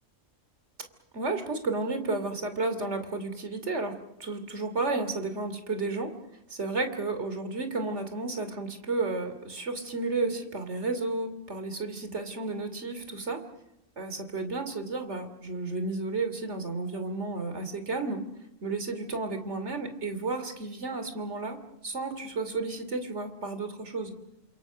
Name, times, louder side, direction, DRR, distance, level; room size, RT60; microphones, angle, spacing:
voice 1, 1.1-6.1 6.5-13.4 14.0-18.2 18.6-24.2, right 3 dB, 60° right, 8 dB, 3.1 m, -32 dB
29.0 x 27.0 x 6.3 m, 0.85 s
omnidirectional pair, 1.3 m